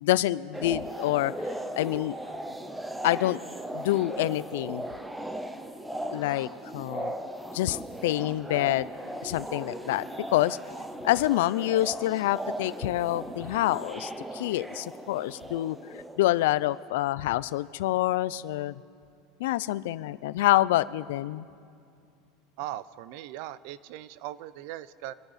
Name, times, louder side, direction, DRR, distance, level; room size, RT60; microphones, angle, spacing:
voice 1, 0.0-1.3 1.7-2.2 3.0-3.4 3.7-4.8 6.1-7.2 7.5-8.9 9.2-10.1 10.3-10.6 11.0-18.7 19.4-21.5, left 15 dB, 80° left, 18 dB, 0.4 m, -27 dB
sound 1, 0.5-16.7, right 1 dB, 5° right, 0.6 m, -38 dB
voice 2, 22.6-25.1, right 13 dB, 55° right, 17 dB, 0.5 m, -39 dB
26.5 x 11.5 x 4.2 m, 2.4 s
supercardioid pair, 165°, 0 cm